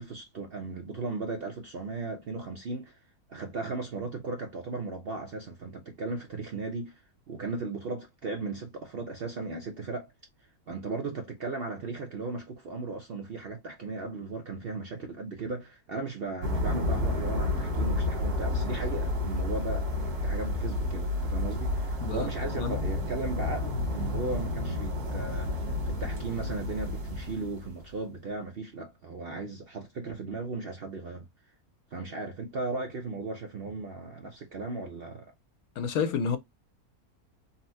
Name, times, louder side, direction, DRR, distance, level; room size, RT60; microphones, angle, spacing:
voice 1, 0.0-3.0 3.3-10.1 10.7-31.3 31.9-35.3, right 3 dB, 60° right, 0.6 m, -36 dB
sound 1, 16.4-27.8, left 2 dB, 85° right, 1.7 m, -30 dB
voice 2, 22.0-22.9 35.8-36.4, left 6 dB, 75° left, 1.1 m, -30 dB
4.0 x 2.0 x 2.6 m
omnidirectional pair, 1.6 m